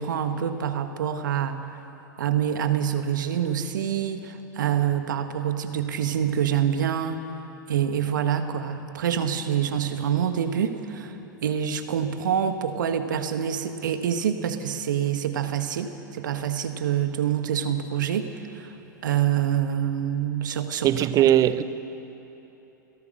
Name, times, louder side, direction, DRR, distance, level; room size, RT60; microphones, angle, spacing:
voice 1, 0.0-1.6 2.2-7.2 7.7-11.2 11.4-18.3 18.5-18.7 19.0-21.3, right 9 dB, 70° right, 1.6 m, -26 dB
voice 2, 20.8-21.6, right 12 dB, 35° right, 0.8 m, -19 dB
28.0 x 17.5 x 6.5 m
figure-of-eight pair, 95°, 11 cm